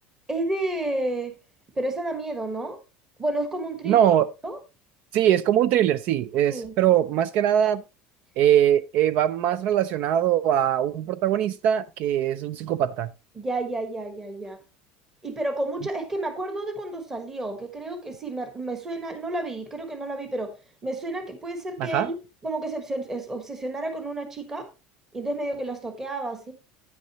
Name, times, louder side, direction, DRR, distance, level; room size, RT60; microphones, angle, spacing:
voice 1, 0.3-1.3 1.7-2.8 3.2-4.1 4.4-4.6 6.5-6.7 13.3-14.6 15.2-20.6 20.8-22.2 22.4-24.7 25.1-26.5, right 2 dB, 15° right, 1.3 m, -31 dB
voice 2, 3.9-4.3 5.1-7.8 8.4-13.1 21.8-22.1, right 10 dB, 50° right, 0.4 m, -22 dB
9.4 x 9.3 x 2.9 m
cardioid pair, 160°, 4 cm